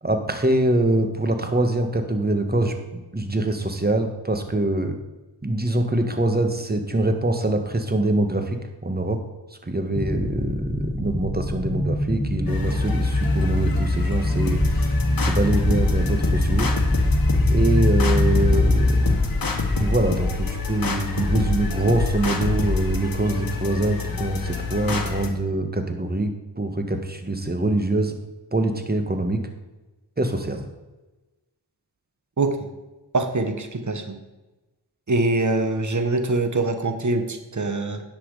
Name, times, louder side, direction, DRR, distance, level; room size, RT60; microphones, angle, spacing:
voice 1, 0.0-5.0 5.4-9.2 9.6-14.9 15.2-16.7 17.5-19.4 19.7-28.1 28.5-29.5 30.2-30.7, right 2 dB, 25° right, 6 dB, 1.5 m, -24 dB
sound 1, 9.9-19.2, left 1 dB, 15° left, 1.4 m, -23 dB
sound 2, 12.5-25.3, left 3 dB, 55° left, 1.4 m, -26 dB
voice 2, 32.4-32.7 33.1-34.2 35.1-38.0, right 2 dB, 45° right, 7 dB, 1.3 m, -24 dB
10.0 x 6.1 x 4.9 m, 1.1 s
cardioid pair, 45°, 41 cm